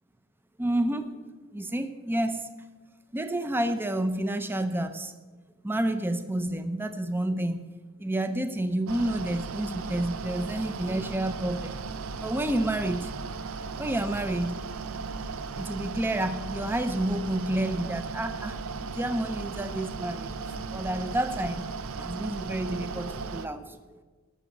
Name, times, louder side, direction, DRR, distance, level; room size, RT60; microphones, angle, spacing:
voice 1, 0.6-1.1 1.5-2.5 3.1-5.1 5.6-7.6 8.0-11.7 12.2-13.1 13.8-14.6 15.6-20.3 20.7-21.6 22.0-24.0, right 1 dB, 10° right, 9 dB, 0.6 m, -29 dB
Mechanical fan, 8.9-23.5, right 4 dB, 85° right, 0.7 m, -36 dB
13.0 x 6.2 x 8.3 m, 1.3 s
head